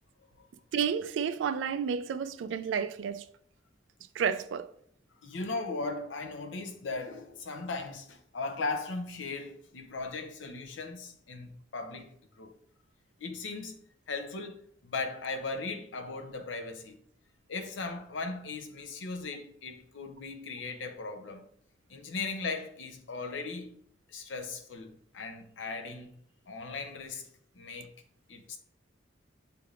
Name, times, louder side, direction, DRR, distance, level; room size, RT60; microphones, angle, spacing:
voice 1, 0.7-3.3 4.1-4.7, right 7 dB, 85° right, 0.3 m, -31 dB
voice 2, 5.2-12.5 13.2-13.8 14.1-14.6 14.8-17.0 17.5-21.4 21.9-23.8 24.1-26.1 26.5-27.3 27.5-27.9 28.3-28.6, left 3 dB, 85° left, 0.6 m, -38 dB
6.6 x 3.3 x 2.4 m
head